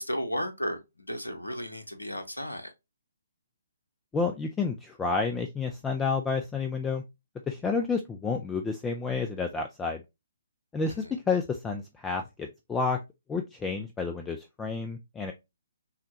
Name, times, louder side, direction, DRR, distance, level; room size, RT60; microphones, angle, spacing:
voice 1, 0.0-2.7 11.0-11.1, equal, 80° left, 0.9 m, -34 dB
voice 2, 4.1-7.0 7.5-10.0 10.7-13.0 13.3-15.3, left 4 dB, 10° left, 0.3 m, -30 dB
5.6 x 2.2 x 2.7 m
figure-of-eight pair, 135°, 0 cm